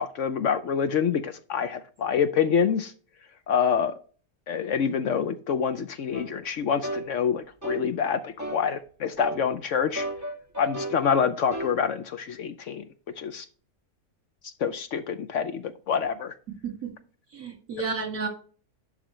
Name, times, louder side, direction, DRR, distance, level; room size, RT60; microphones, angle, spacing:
voice 1, 0.0-2.9 3.5-4.0 4.5-10.1 10.6-12.9 13.2-13.5 14.4-16.3, left 7 dB, 65° left, 10 dB, 0.9 m, -26 dB
sound 1, 6.1-6.3 6.8-7.1 7.6-7.9 8.4-8.7 9.2-9.4 10.0-11.0 11.5-11.8, right 1 dB, 10° right, 1.7 m, -33 dB
voice 2, 16.5-16.9 17.3-18.3, right 5 dB, 70° right, 2 dB, 2.8 m, -32 dB
11.0 x 5.0 x 3.0 m, 0.40 s
omnidirectional pair, 1.6 m